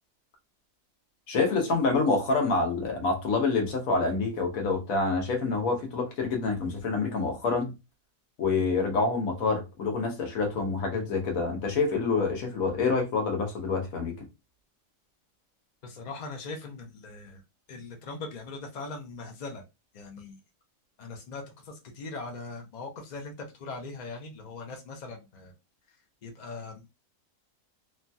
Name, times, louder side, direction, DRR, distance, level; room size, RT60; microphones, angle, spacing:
voice 1, 1.3-7.7 8.4-14.2, left 4 dB, 80° left, 1.3 m, -27 dB
voice 2, 15.8-17.4 17.7-19.6 19.9-20.4 21.0-25.5 26.2-27.0, left 3 dB, 60° left, 0.4 m, -40 dB
3.1 x 2.2 x 2.6 m
omnidirectional pair, 1.4 m